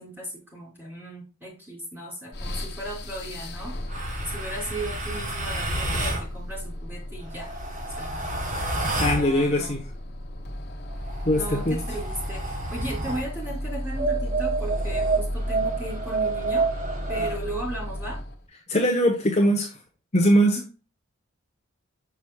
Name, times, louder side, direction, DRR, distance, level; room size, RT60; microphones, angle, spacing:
voice 1, 0.0-3.8 4.2-7.5 8.0-8.3 9.1-9.8 11.3-16.7 17.1-18.2, right 1 dB, 10° right, -5 dB, 3.6 m, -36 dB
sound 1, 2.3-18.5, equal, 50° left, 1.4 m, -34 dB
sound 2, 3.9-6.3 7.2-9.3 10.9-13.3 13.9-17.4, right 3 dB, 40° right, 1.6 m, -29 dB
voice 2, 9.0-9.8 11.2-11.8 18.7-19.7 20.1-20.6, equal, 30° left, 1 dB, 1.1 m, -21 dB
7.1 x 6.1 x 2.3 m, 0.35 s
head